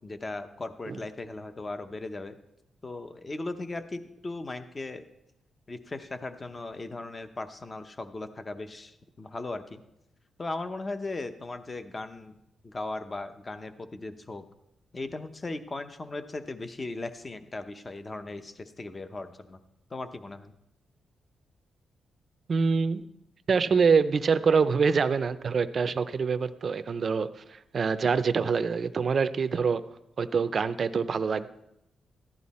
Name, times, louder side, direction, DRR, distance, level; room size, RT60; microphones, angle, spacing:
voice 1, 0.0-2.4 2.8-5.0 5.7-9.8 10.4-12.3 12.6-14.4 14.9-19.6 19.9-20.5, left 2 dB, 25° left, 9 dB, 0.8 m, -37 dB
voice 2, 22.5-23.0 23.5-29.8 30.2-31.5, right 5 dB, 45° right, 12 dB, 0.5 m, -25 dB
14.5 x 11.0 x 4.2 m, 0.85 s
cardioid pair, 125°, 0 cm